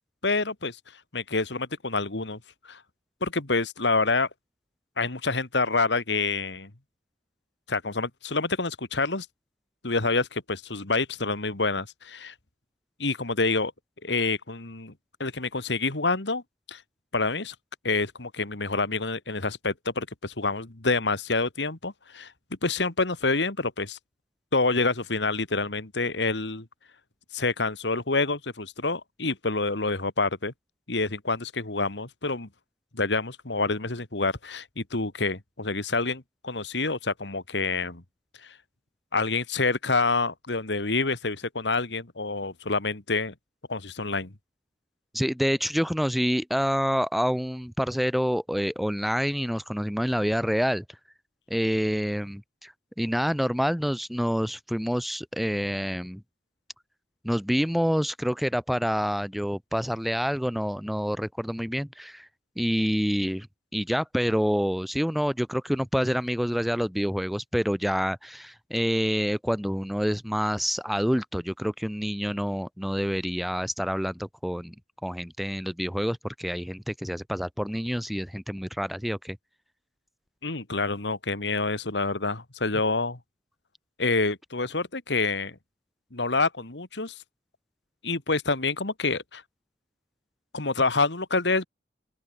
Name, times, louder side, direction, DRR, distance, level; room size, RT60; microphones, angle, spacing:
voice 1, 0.2-0.8 1.1-2.4 2.7-2.8 3.2-4.3 5.0-6.7 7.7-9.3 9.8-12.3 13.0-13.7 14.0-14.9 15.2-16.4 16.7-16.8 17.1-17.5 17.8-22.3 22.6-24.0 24.5-26.7 27.3-30.5 30.9-32.5 32.9-38.0 39.1-43.3 43.7-44.3 80.4-83.2 84.0-85.6 86.1-87.1 88.0-89.4 90.5-91.7, left 3 dB, 75° left, 2.2 m, -27 dB
voice 2, 45.1-50.8 51.5-56.2 57.2-62.3 62.6-63.5 63.7-74.7 75.0-79.4, equal, ahead, 0.5 m, -27 dB
head